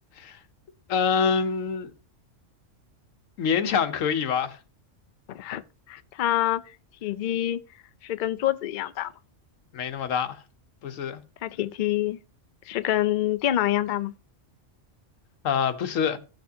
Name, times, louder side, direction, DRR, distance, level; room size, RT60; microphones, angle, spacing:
voice 1, 0.9-1.9 3.4-4.6 9.7-10.4 10.8-11.2 15.4-16.2, left 6 dB, 80° left, 1.2 m, -25 dB
voice 2, 5.3-5.6 5.9-6.6 7.0-7.6 8.0-9.1 11.4-12.2 12.7-14.1, left 13 dB, 60° left, 0.5 m, -26 dB
16.0 x 6.5 x 2.7 m
omnidirectional pair, 1.3 m